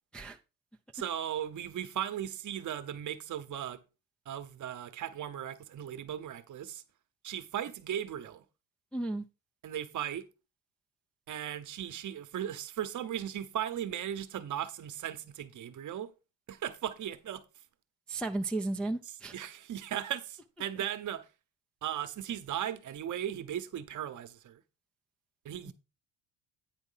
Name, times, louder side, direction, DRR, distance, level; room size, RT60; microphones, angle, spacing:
voice 1, 0.9-3.8 4.3-6.8 7.2-8.4 9.6-10.2 11.3-16.1 16.5-17.4 19.3-21.3 21.8-24.6 25.4-25.7, right 10 dB, 45° right, 0.9 m, -37 dB
voice 2, 8.9-9.2 18.1-19.4 25.7-25.8, right 2 dB, 5° left, 0.4 m, -34 dB
9.2 x 4.3 x 5.6 m
cardioid pair, 135°, 41 cm